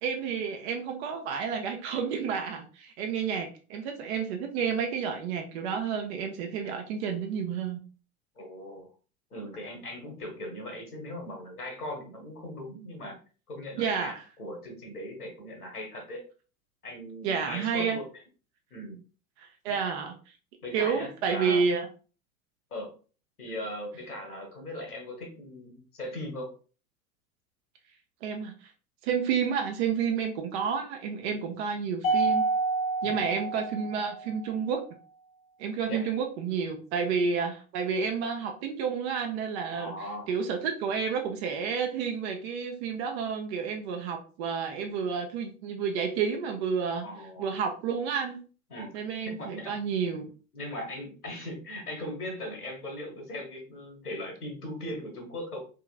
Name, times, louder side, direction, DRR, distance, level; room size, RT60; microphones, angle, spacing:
voice 1, 0.0-7.8 13.8-14.1 17.2-18.0 19.4-20.1 20.7-21.9 28.2-28.7 29.0-32.4 33.0-34.8 35.6-39.9 40.3-47.0 47.4-48.4 48.9-50.3, right 6 dB, 45° right, 4 dB, 0.7 m, -30 dB
voice 2, 8.4-8.9 9.3-13.2 13.5-16.3 16.8-18.2 18.7-19.0 19.6-19.8 20.6-21.6 22.7-22.9 23.4-26.5 33.0-33.2 35.9-36.1 39.7-40.3 47.0-47.5 48.7-49.8 50.5-55.6, left 1 dB, 80° left, 2 dB, 1.3 m, -39 dB
Mallet percussion, 32.0-34.5, right 3 dB, 15° left, 0.6 m, -28 dB
3.6 x 2.9 x 2.4 m, 0.37 s
figure-of-eight pair, 85°, 45 cm